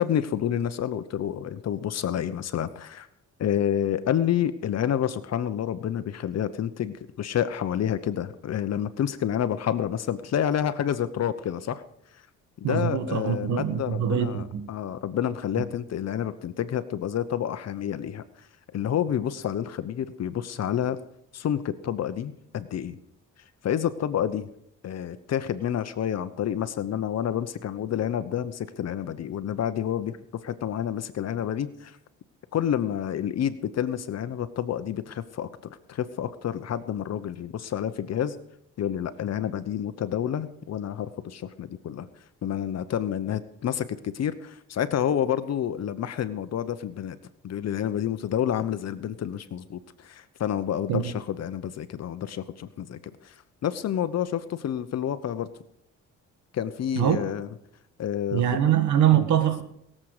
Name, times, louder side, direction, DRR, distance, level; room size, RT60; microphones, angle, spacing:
voice 1, 0.0-3.1 3.4-11.8 12.6-18.2 18.7-21.0 21.3-23.0 23.6-24.5 24.8-32.0 32.5-38.4 38.8-42.1 42.4-47.2 47.4-53.3 53.6-55.5 56.5-57.5 58.0-58.5 59.1-59.3, left 9 dB, 60° left, 0.9 m, -29 dB
voice 2, 12.6-14.7 50.9-51.0 56.9-57.2 58.3-59.6, right 10 dB, 75° right, 1.7 m, -23 dB
21.5 x 7.6 x 4.9 m
cardioid pair, 90°, 30 cm